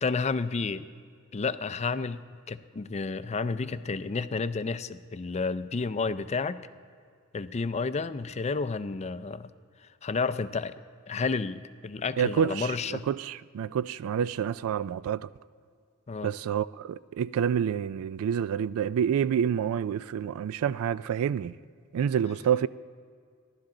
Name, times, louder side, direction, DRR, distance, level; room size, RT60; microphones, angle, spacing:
voice 1, 0.0-0.9 1.3-6.6 7.3-9.5 10.0-10.7 11.1-13.1 16.1-16.3, left 4 dB, 30° left, 0.4 m, -31 dB
voice 2, 12.2-15.3 16.2-21.6 21.9-22.7, right 8 dB, 65° right, 0.3 m, -28 dB
28.5 x 11.5 x 3.8 m
head